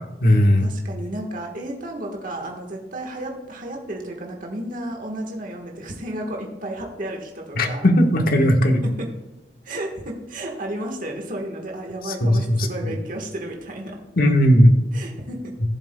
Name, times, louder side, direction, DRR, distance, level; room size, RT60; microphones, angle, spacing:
voice 1, 0.0-0.7 7.6-8.8 12.2-12.7 14.2-14.7, equal, 55° left, 4 dB, 1.2 m, -17 dB
voice 2, 0.6-7.9 8.8-9.1 9.6-14.0 14.9-15.5, right 1 dB, 50° right, 2 dB, 1.4 m, -32 dB
15.5 x 7.6 x 2.2 m, 1.1 s
head